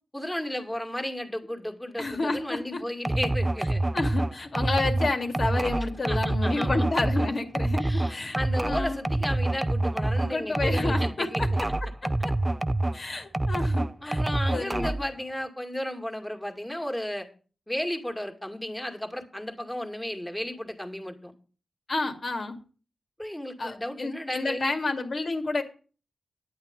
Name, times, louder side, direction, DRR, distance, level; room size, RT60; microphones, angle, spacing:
voice 1, 0.1-3.8 6.1-6.8 7.2-7.3 7.8-11.6 14.0-17.3 17.7-21.3 23.2-24.7, left 1 dB, 10° left, 4 dB, 2.2 m, -34 dB
voice 2, 2.0-2.8 3.9-8.4 8.6-9.0 10.2-11.5 12.9-14.2 14.5-15.0 21.9-22.6 23.6-25.6, left 3 dB, 55° left, 5 dB, 2.2 m, -30 dB
sound 1, 3.0-13.0 13.3-15.1, right 2 dB, 20° right, 0.5 m, -27 dB
10.0 x 8.7 x 5.3 m, 0.37 s
cardioid pair, 65°, 0 cm